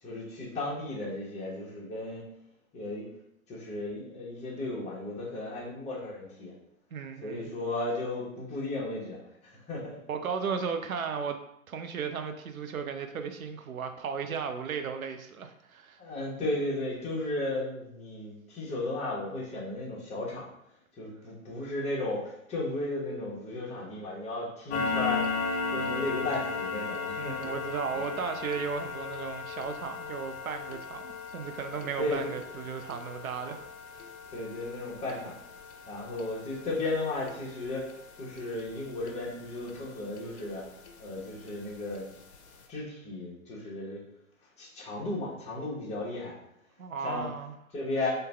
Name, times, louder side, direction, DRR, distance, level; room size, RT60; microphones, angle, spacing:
voice 1, 0.0-2.2 2.7-3.1 3.5-6.5 7.2-9.2 9.4-10.0 16.0-20.5 21.0-25.3 25.7-27.6 32.0-32.4 34.3-35.4 35.9-37.9 38.2-40.6 41.0-42.1 42.7-44.0 44.6-46.4 47.0-47.3 47.7-48.1, left 2 dB, 15° left, -5 dB, 1.0 m, -34 dB
voice 2, 6.9-7.5 10.1-11.4 11.7-16.0 27.2-34.0 46.8-47.5, right 6 dB, 80° right, 7 dB, 0.6 m, -35 dB
sound 1, 24.7-39.8 40.2-40.4 40.8-40.9 41.4-41.5 41.9-42.0 42.3-42.5, left 4 dB, 55° left, 0.7 m, -36 dB
3.8 x 2.7 x 3.3 m, 0.78 s
figure-of-eight pair, 120°, 41 cm